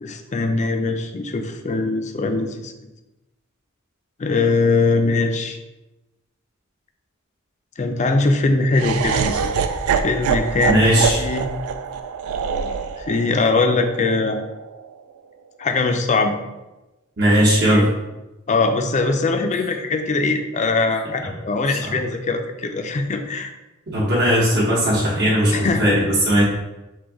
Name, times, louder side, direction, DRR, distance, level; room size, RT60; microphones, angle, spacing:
voice 1, 0.0-2.7 4.2-5.6 7.8-9.5 10.0-11.5 13.0-14.4 15.6-16.4 17.4-17.9 18.5-23.5 25.5-26.0, left 3 dB, 35° left, 5 dB, 0.4 m, -21 dB
Laughter, 8.7-14.9, right 6 dB, 80° right, 0.4 m, -25 dB
voice 2, 10.6-11.2 17.2-17.8 21.7-21.9 23.9-26.4, equal, 50° right, -7 dB, 1.0 m, -18 dB
3.8 x 2.6 x 4.7 m, 1.0 s
head